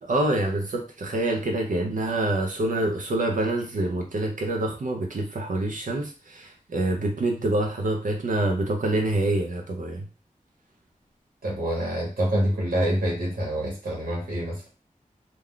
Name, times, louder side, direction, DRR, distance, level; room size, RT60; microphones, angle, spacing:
voice 1, 0.0-10.1, right 2 dB, 65° right, 2 dB, 0.5 m, -26 dB
voice 2, 11.4-14.6, right 1 dB, 85° right, -4 dB, 1.0 m, -26 dB
2.2 x 2.2 x 3.6 m, 0.34 s
wide cardioid pair, 90°, 14 cm